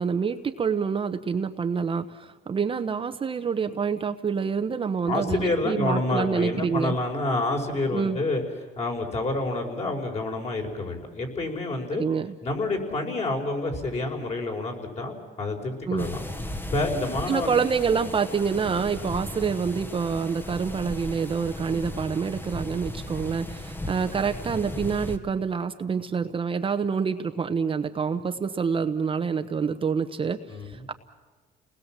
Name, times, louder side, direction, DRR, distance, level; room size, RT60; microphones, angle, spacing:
voice 1, 0.0-6.9 7.9-8.2 11.9-12.3 15.9-16.1 17.3-30.4 30.6-30.9, right 6 dB, 30° right, 7 dB, 1.0 m, -27 dB
voice 2, 5.0-8.4 8.7-12.0 12.4-16.2 16.7-17.5 30.5-30.9, left 2 dB, 40° left, 2 dB, 5.1 m, -28 dB
sound 1, 16.0-25.2, left 1 dB, 10° left, 1.5 m, -36 dB
30.0 x 20.0 x 7.5 m, 1.4 s
cardioid pair, 110°, 17 cm